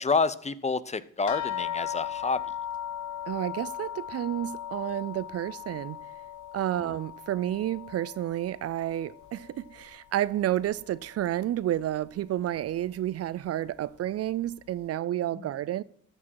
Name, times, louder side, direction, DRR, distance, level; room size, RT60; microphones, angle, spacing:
voice 1, 0.0-2.4 15.4-15.5, left 4 dB, 25° left, 0.5 m, -28 dB
sound 1, 1.3-10.1 10.4-11.3 12.0-12.1 12.6-12.7, left 10 dB, 75° left, 0.8 m, -38 dB
voice 2, 3.3-6.0 6.5-15.8, right 12 dB, 55° right, 0.4 m, -30 dB
13.5 x 6.2 x 4.7 m
cardioid pair, 90°, 30 cm